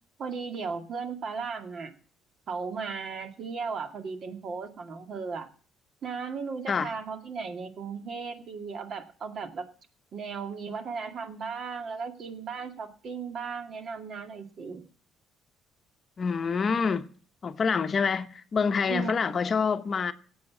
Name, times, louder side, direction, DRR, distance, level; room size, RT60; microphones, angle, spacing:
voice 1, 0.2-2.0 2.5-5.5 6.0-9.7 10.1-14.8 18.9-19.3, right 5 dB, 50° right, 2.1 m, -36 dB
voice 2, 16.2-17.1 17.4-20.1, left 5 dB, 40° left, 0.9 m, -26 dB
17.0 x 8.0 x 6.0 m
cardioid pair, 105°, 0 cm